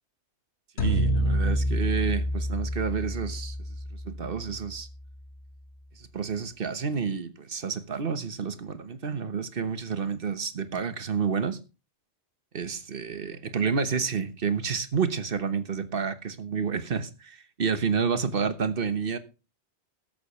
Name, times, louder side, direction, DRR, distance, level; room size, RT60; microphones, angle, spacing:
sound 1, 0.8-5.1, equal, 85° left, 1.8 m, -28 dB
voice 1, 0.8-3.6 4.0-4.9 6.0-11.6 12.5-19.2, right 6 dB, 55° right, 1.3 m, -29 dB
14.0 x 12.0 x 3.1 m
omnidirectional pair, 1.1 m